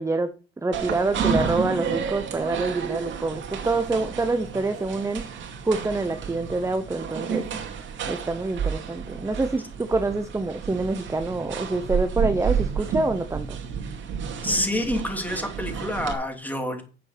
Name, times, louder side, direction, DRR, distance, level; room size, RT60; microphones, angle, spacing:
voice 1, 0.0-7.7 8.1-13.6, right 3 dB, 15° right, 0.8 m, -26 dB
sound 1, 0.7-16.1, right 6 dB, 75° right, 2.4 m, -31 dB
voice 2, 14.4-16.8, left 1 dB, 10° left, 3.2 m, -27 dB
9.7 x 7.5 x 5.9 m
cardioid pair, 90°, 20 cm